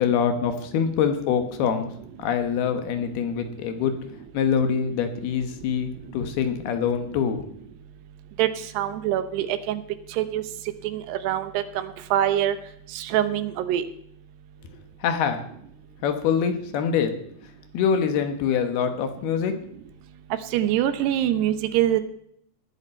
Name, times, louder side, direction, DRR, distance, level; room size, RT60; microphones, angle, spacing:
voice 1, 0.0-1.9 2.2-3.9 4.3-7.5 15.0-15.4 16.0-17.1 17.7-19.5, left 7 dB, 75° left, 7 dB, 3.2 m, -24 dB
voice 2, 8.7-9.8 10.1-10.4 10.8-12.6 12.9-13.8 20.5-22.0, right 12 dB, 85° right, 11 dB, 3.0 m, -24 dB
19.0 x 12.0 x 4.4 m, 0.70 s
omnidirectional pair, 4.7 m